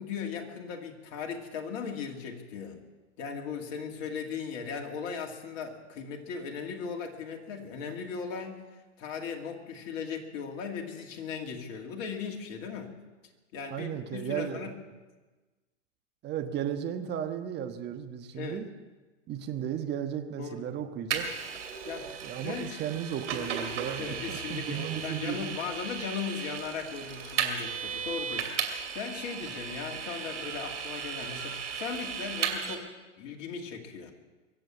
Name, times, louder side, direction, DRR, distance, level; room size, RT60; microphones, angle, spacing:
voice 1, 0.0-2.8 3.2-12.9 13.5-14.8 18.3-18.7 20.4-20.8 21.9-22.1 22.4-22.8 24.0-32.9 33.2-34.1, left 6 dB, 45° left, 1 dB, 2.4 m, -38 dB
voice 2, 13.7-14.7 16.2-18.7 19.3-21.3 22.2-25.6, right 9 dB, 25° right, 6 dB, 1.3 m, -35 dB
Vehicle, 21.1-32.8, right 7 dB, 70° right, 2.7 m, -35 dB
23.0 x 7.9 x 7.3 m, 1.2 s
hypercardioid pair, 105°, 37 cm